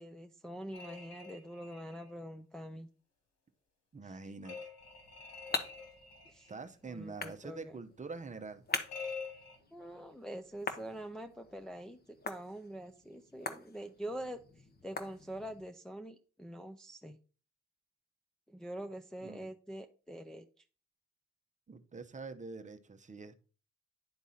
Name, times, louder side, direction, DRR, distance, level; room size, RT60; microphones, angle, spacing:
voice 1, 0.0-2.9 6.3-6.5 6.9-7.8 9.7-14.4 14.8-17.2 18.5-20.5, right 1 dB, ahead, 4 dB, 0.5 m, -45 dB
sound 1, 0.7-2.1 4.4-6.6 8.9-9.6, left 5 dB, 60° left, 3.1 m, -46 dB
voice 2, 3.9-4.6 6.5-8.6 19.2-19.5 21.7-23.3, right 4 dB, 25° right, 9 dB, 0.8 m, -45 dB
sound 2, 4.8-15.7, left 4 dB, 30° left, 1.1 m, -44 dB
10.5 x 3.6 x 4.1 m, 0.38 s
cardioid pair, 90°, 30 cm